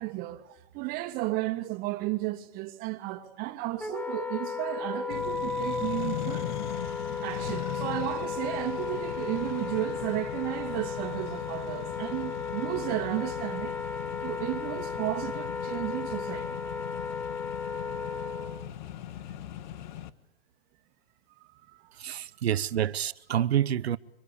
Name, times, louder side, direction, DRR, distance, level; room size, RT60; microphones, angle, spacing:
voice 1, 0.0-6.5 7.2-13.8 14.2-16.6 21.4-21.9, right 18 dB, 30° right, 2.2 m, -33 dB
Wind instrument woodwind instrument, 3.8-18.7, left 5 dB, 5° left, 1.1 m, -35 dB
Accelerating revving vroom, 5.1-20.1, left 11 dB, 50° left, 1.4 m, -39 dB
voice 2, 22.0-24.0, right 10 dB, 85° right, 1.0 m, -28 dB
25.5 x 25.0 x 8.4 m
hypercardioid pair, 155°, 31 cm